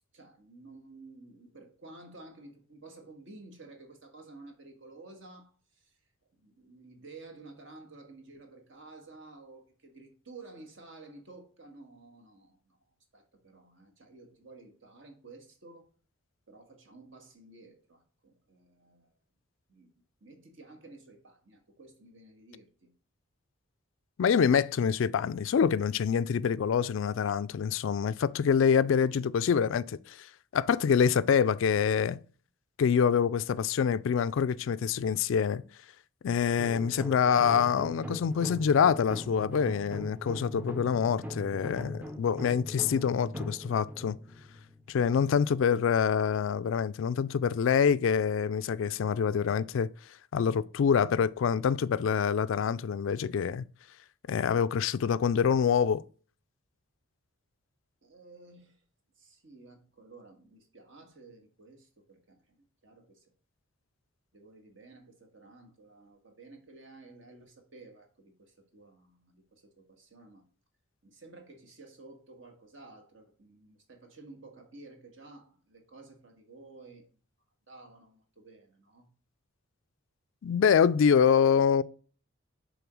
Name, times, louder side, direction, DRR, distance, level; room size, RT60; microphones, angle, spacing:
voice 1, 0.1-6.0 6.3-12.8 13.1-15.9 16.5-19.1 19.7-19.9 20.2-22.9 45.3-45.5 58.0-58.8 59.1-63.3 64.3-70.4 71.0-77.0 77.7-79.1, right 3 dB, 60° right, 1.7 m, -52 dB
voice 2, 24.2-30.3 30.5-32.2 32.8-35.6 36.2-44.2 44.9-49.9 50.3-53.6 54.3-56.0 80.4-81.8, left 7 dB, 65° left, 0.3 m, -26 dB
sound 1, 36.6-45.4, left 1 dB, 10° right, 0.5 m, -41 dB
7.0 x 3.7 x 6.1 m
head